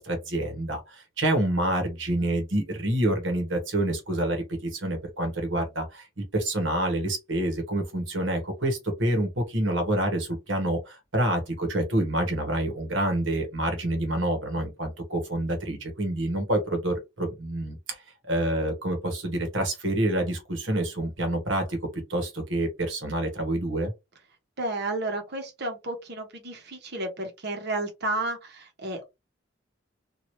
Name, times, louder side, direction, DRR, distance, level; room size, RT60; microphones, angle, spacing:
voice 1, 0.0-18.0 18.3-21.8 22.1-23.9, right 1 dB, 80° right, 1.3 m, -27 dB
voice 2, 24.6-29.0, right 2 dB, 60° right, 1.1 m, -32 dB
3.1 x 2.7 x 2.7 m
head